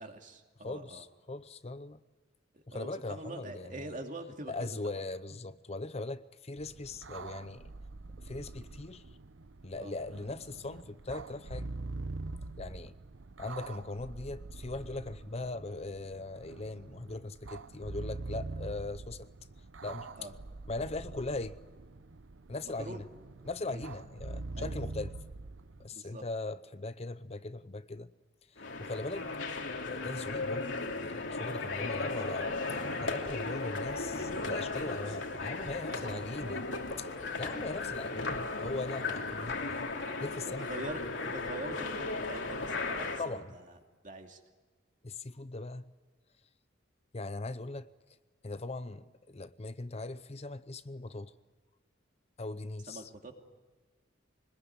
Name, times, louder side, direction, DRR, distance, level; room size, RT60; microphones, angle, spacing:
voice 1, 0.0-1.0 2.5-5.0 9.8-10.0 20.2-20.3 22.8-23.0 23.7-23.8 24.5-24.8 25.9-26.2 35.8-36.6 37.5-37.8 40.4-41.0 41.3-43.6 44.0-44.4 52.9-53.3, right 2 dB, 40° right, 2.6 m, -44 dB
voice 2, 0.6-2.0 2.7-4.0 4.5-7.7 8.2-9.0 9.6-11.7 12.6-12.9 13.4-19.3 19.8-20.3 20.7-21.6 22.5-23.1 23.4-25.1 25.8-28.1 28.8-29.3 29.9-30.7 31.0-36.6 37.0-37.1 37.4-39.9 40.2-40.7 41.3-41.4 43.2-43.6 45.0-45.8 47.1-47.9 48.4-51.3 52.4-53.1, left 2 dB, 35° left, 0.7 m, -40 dB
sound 1, 6.6-25.9, right 3 dB, 75° right, 0.8 m, -44 dB
sound 2, 28.6-43.2, left 3 dB, 75° left, 2.8 m, -36 dB
25.0 x 20.5 x 9.7 m
head